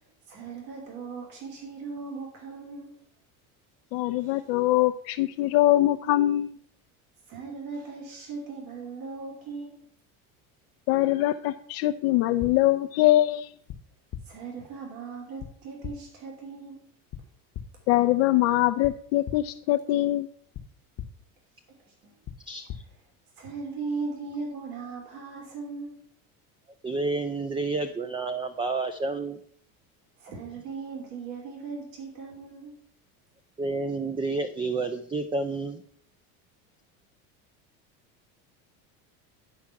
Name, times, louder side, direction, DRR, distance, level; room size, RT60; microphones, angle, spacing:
voice 1, 0.3-3.0 4.2-4.4 7.3-9.8 14.3-16.8 22.0-22.1 23.4-26.0 30.2-32.7, right 4 dB, 75° right, -1 dB, 3.1 m, -38 dB
voice 2, 3.9-6.5 10.9-13.5 17.9-20.3, left 15 dB, 70° left, 4 dB, 0.6 m, -23 dB
sound 1, 12.4-12.5 13.7-13.8 14.1-14.2 15.4-15.5 15.8-15.9 17.1-17.2 17.5-17.6 18.8-18.9 19.2-19.4 20.5-20.6 21.0-21.1 22.2-22.4 22.7-22.8, left 10 dB, 45° left, 1.0 m, -36 dB
voice 3, 22.5-22.8 26.8-29.4 33.6-35.8, right 3 dB, 15° right, 8 dB, 0.4 m, -30 dB
10.0 x 4.8 x 5.8 m, 0.64 s
supercardioid pair, 100°, 43 cm